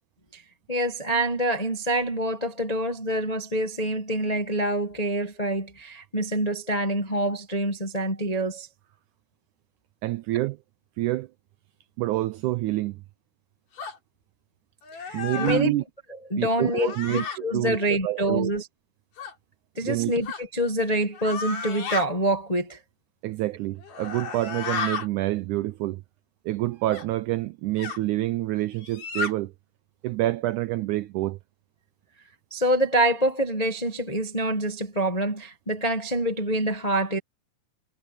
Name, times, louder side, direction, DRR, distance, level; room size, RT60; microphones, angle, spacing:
voice 1, 0.7-8.7 15.0-15.7 16.3-18.7 19.7-22.8 32.5-37.2, right 1 dB, 40° left, 0.5 m, -26 dB
voice 2, 10.0-10.6 11.0-11.3 12.0-13.0 15.1-15.8 16.4-18.5 19.8-20.2 23.2-26.0 26.5-29.5 30.0-31.4, right 16 dB, 85° right, 1.8 m, -27 dB
sound 1, 13.8-14.0 14.8-15.6 16.7-17.4 19.2-19.3 20.2-20.4 21.1-22.1 23.8-25.1 26.9-27.1 27.8-28.0 28.8-29.3, left 5 dB, 65° left, 5.6 m, -33 dB
omnidirectional pair, 4.1 m